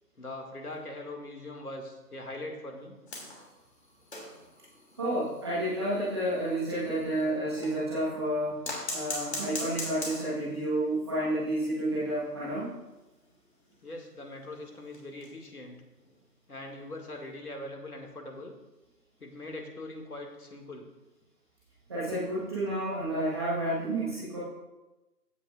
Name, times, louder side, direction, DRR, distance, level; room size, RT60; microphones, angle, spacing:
voice 1, 0.2-3.0 13.8-15.8 16.5-18.5 19.2-20.9, left 1 dB, 65° left, 2 dB, 2.4 m, -41 dB
sound 1, 3.1-7.9 8.6-10.5 10.9-11.0 11.3-11.4 11.7-11.8 12.4-15.5 15.9-16.2 17.4-17.5, left 2 dB, 40° left, 2.9 m, -41 dB
voice 2, 4.9-12.7 21.9-24.4, right 1 dB, 15° right, -10 dB, 1.5 m, -30 dB
15.0 x 9.1 x 2.5 m, 1.0 s
figure-of-eight pair, 160°, 49 cm